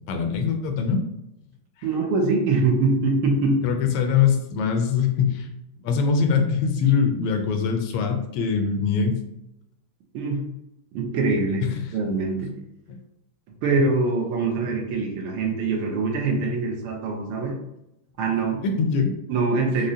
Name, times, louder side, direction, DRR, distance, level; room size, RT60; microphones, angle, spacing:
voice 1, 0.1-1.0 3.6-5.5 5.8-9.2 11.6-11.8 12.9-13.0 18.6-19.1, left 6 dB, 90° left, 5 dB, 1.5 m, -22 dB
voice 2, 1.8-3.6 10.1-10.4 10.9-11.6 11.9-12.5 13.6-17.6 18.2-18.6 19.3-19.9, right 3 dB, 80° right, 1 dB, 1.5 m, -23 dB
4.9 x 2.0 x 2.7 m, 0.84 s
omnidirectional pair, 2.4 m